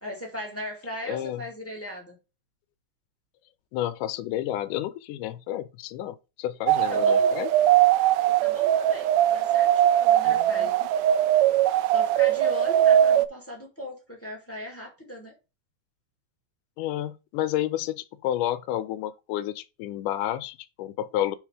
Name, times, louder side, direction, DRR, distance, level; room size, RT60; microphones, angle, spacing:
voice 1, 0.0-2.2 6.9-7.3 8.3-10.8 11.9-15.3, left 1 dB, 5° left, 1.7 m, -38 dB
voice 2, 1.1-1.4 3.7-7.5 10.2-10.7 16.8-21.4, left 12 dB, 85° left, 2.2 m, -30 dB
sound 1, 6.7-13.3, right 11 dB, 80° right, 1.6 m, -20 dB
5.7 x 4.5 x 4.9 m
omnidirectional pair, 3.6 m